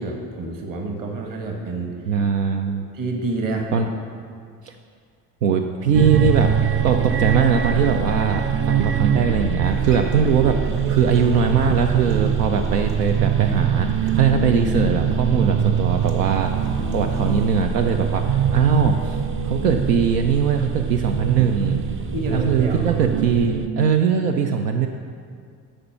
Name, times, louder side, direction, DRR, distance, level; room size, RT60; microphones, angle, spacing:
voice 1, 0.0-1.9 2.9-3.9 22.1-22.9, right 2 dB, 45° right, 2 dB, 1.4 m, -28 dB
voice 2, 2.1-2.9 3.7-3.9 4.6-4.7 5.4-6.5 6.8-16.5 16.9-21.8 22.3-24.9, right 6 dB, 80° right, 4 dB, 0.6 m, -21 dB
sound 1, 5.9-23.7, right 7 dB, 25° right, 0.5 m, -23 dB
Human voice / Acoustic guitar, 9.6-17.6, right 5 dB, 60° right, 1.3 m, -38 dB
11.5 x 4.4 x 5.8 m, 2.2 s
figure-of-eight pair, 50°, 48 cm